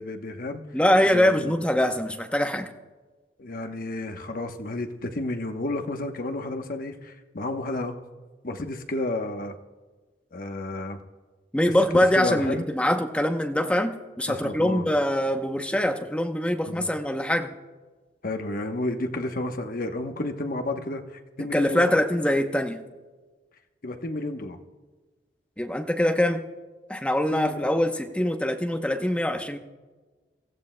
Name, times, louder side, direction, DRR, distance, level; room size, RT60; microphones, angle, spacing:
voice 1, 0.0-0.6 1.0-1.6 3.4-8.0 8.4-9.6 10.3-11.0 12.1-12.7 14.3-14.9 16.7-16.9 18.2-21.9 23.8-24.6 27.3-27.6, left 2 dB, 55° left, 6 dB, 1.0 m, -31 dB
voice 2, 0.7-2.7 11.5-17.5 21.5-22.8 25.6-26.4 26.9-29.6, left 1 dB, 5° left, 5 dB, 0.8 m, -23 dB
27.5 x 14.5 x 2.2 m, 1.3 s
head